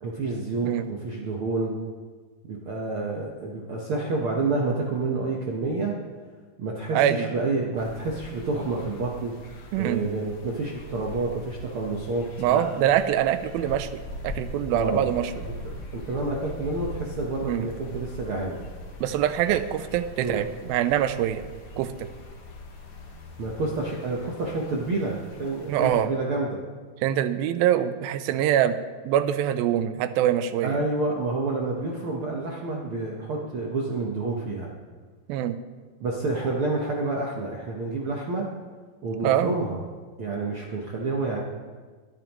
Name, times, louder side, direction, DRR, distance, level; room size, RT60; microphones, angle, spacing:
voice 1, 0.0-1.8 2.5-5.9 6.6-9.3 9.8-12.6 14.7-15.1 15.9-18.6 20.2-20.4 23.4-26.6 30.6-34.7 36.0-38.5 39.0-39.8 40.2-41.4, right 3 dB, 65° right, -2 dB, 1.3 m, -29 dB
voice 2, 6.9-7.3 9.7-10.0 12.4-15.5 17.4-17.6 19.0-21.4 21.8-21.9 25.7-26.1 27.0-28.8 29.0-30.8 35.3-35.6 39.2-39.5, right 11 dB, 85° right, 11 dB, 2.5 m, -24 dB
sound 1, 7.8-26.0, left 1 dB, 55° left, 1.6 m, -41 dB
22.5 x 9.1 x 3.1 m, 1.4 s
omnidirectional pair, 4.1 m